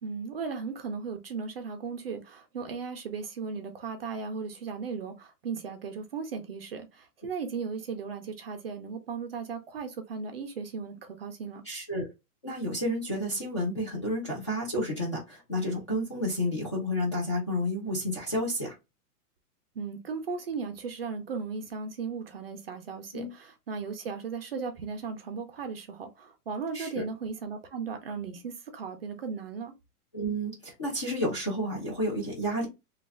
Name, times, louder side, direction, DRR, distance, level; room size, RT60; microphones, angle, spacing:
voice 1, 0.0-11.6 19.8-29.7, right 5 dB, 40° right, 0.4 m, -36 dB
voice 2, 11.7-12.1 12.4-18.8 23.1-23.3 26.7-27.0 30.1-32.7, equal, 20° left, 0.4 m, -31 dB
3.1 x 2.3 x 3.3 m
hypercardioid pair, 170°, 46 cm